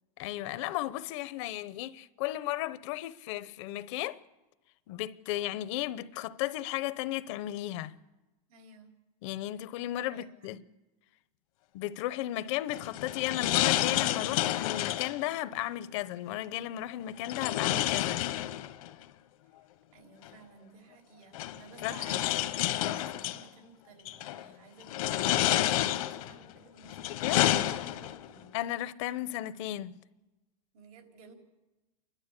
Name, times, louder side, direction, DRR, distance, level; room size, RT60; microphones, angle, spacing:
voice 1, 0.2-4.2 4.9-7.9 9.2-10.6 11.7-18.2 21.8-21.9 27.1-27.6 28.5-30.0, left 14 dB, 55° left, 0.8 m, -35 dB
voice 2, 8.5-8.9 10.1-10.6 19.9-28.5 30.7-31.3, right 4 dB, 80° right, 4.1 m, -54 dB
sound 1, 12.7-15.2 17.2-18.9 20.2-20.3 21.3-23.4 24.0-24.4 24.9-26.3 26.8-28.3, left 14 dB, 70° left, 1.2 m, -29 dB
29.5 x 12.5 x 8.2 m
supercardioid pair, 165°, 19 cm